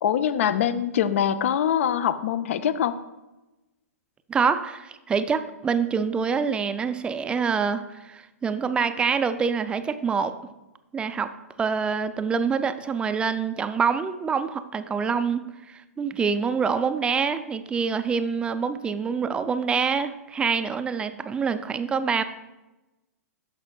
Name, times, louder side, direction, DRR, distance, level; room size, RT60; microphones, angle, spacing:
voice 1, 0.0-3.0, left 9 dB, 55° left, 13 dB, 0.5 m, -23 dB
voice 2, 4.3-10.3 10.9-11.3 11.6-15.4 15.7-22.2, right 6 dB, 10° right, 10 dB, 0.4 m, -26 dB
12.5 x 5.0 x 2.3 m, 1.0 s
figure-of-eight pair, 110°, 9 cm